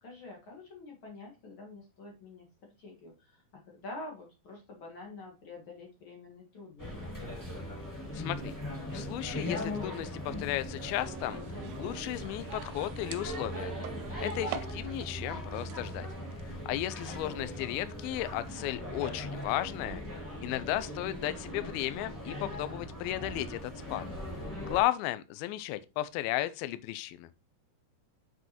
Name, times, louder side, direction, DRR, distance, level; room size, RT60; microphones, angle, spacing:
voice 1, 0.0-2.4 2.8-7.2 17.0-17.4, left 2 dB, 55° left, 1.5 m, -47 dB
sound 1, 6.8-24.8, left 1 dB, 5° left, 1.4 m, -39 dB
voice 2, 8.1-8.5 8.9-11.4 11.8-13.8 14.2-16.1 16.4-20.0 20.4-24.0 24.6-27.3, left 14 dB, 80° left, 2.3 m, -34 dB
sound 2, 10.8-15.2 15.4-16.6, right 10 dB, 80° right, 2.5 m, -45 dB
7.7 x 6.1 x 2.9 m
omnidirectional pair, 4.8 m